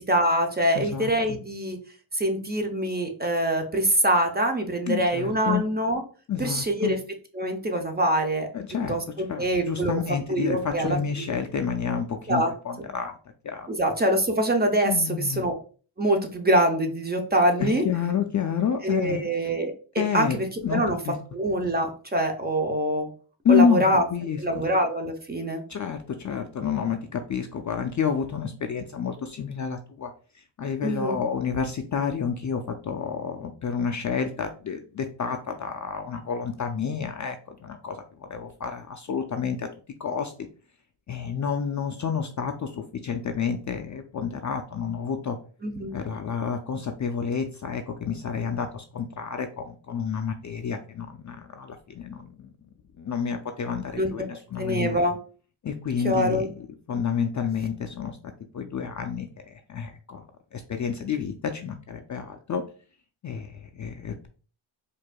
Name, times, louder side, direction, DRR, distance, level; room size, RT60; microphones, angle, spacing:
voice 1, 0.1-1.8 2.1-6.0 6.4-7.0 7.3-8.5 8.9-9.0 9.4-9.9 10.3-11.3 12.3-12.5 13.7-15.5 16.0-17.8 18.8-21.0 21.3-23.1 23.5-24.0 24.4-25.6 30.8-31.2 45.6-46.0 53.9-54.1 54.6-55.2 56.0-56.5, right 1 dB, 20° right, 4 dB, 0.6 m, -24 dB
voice 2, 0.7-1.4 4.9-5.6 6.3-7.0 8.5-8.9 9.3-13.1 13.4-13.7 14.9-15.4 17.6-19.3 20.0-20.4 20.6-21.2 23.4-23.9 24.1-24.6 25.7-39.7 40.0-40.5 41.1-45.4 45.9-52.5 53.0-55.0 55.6-56.5 56.9-58.2 58.5-60.2 60.5-62.6 63.2-64.3, left 6 dB, 40° left, 6 dB, 0.4 m, -29 dB
4.6 x 2.6 x 2.2 m, 0.39 s
cardioid pair, 85°, 49 cm